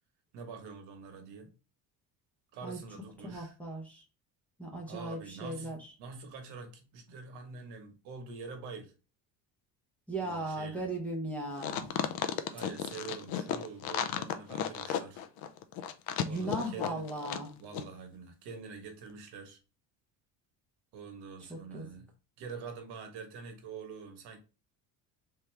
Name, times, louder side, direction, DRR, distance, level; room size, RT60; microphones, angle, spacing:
voice 1, 0.3-1.5 2.5-3.5 4.9-8.9 10.2-10.8 12.5-15.2 16.2-17.0 17.6-19.6 20.9-22.1 22.4-24.4, right 5 dB, 80° right, 1.2 m, -45 dB
voice 2, 3.2-4.0 4.6-5.9 10.1-11.9 16.2-17.5 21.5-21.9, right 1 dB, 5° left, 0.8 m, -37 dB
sound 1, 11.6-17.5 17.7-17.8, left 10 dB, 65° left, 0.5 m, -34 dB
3.6 x 2.9 x 3.2 m
cardioid pair, 170°, 39 cm